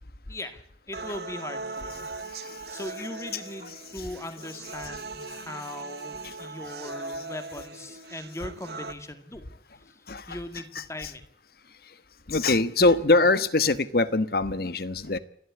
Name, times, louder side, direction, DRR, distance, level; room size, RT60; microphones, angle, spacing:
voice 1, 0.3-2.1 2.4-9.5 9.7-11.2, left 1 dB, 15° left, 9 dB, 2.1 m, -40 dB
sound 1, 0.9-8.9, right 3 dB, 65° right, 1.4 m, -39 dB
voice 2, 2.2-2.6 6.2-6.3 10.1-10.4 10.7-11.1 11.8-11.9 12.3-15.2, left 3 dB, 55° left, 14 dB, 1.2 m, -24 dB
29.0 x 11.5 x 8.4 m, 0.69 s
head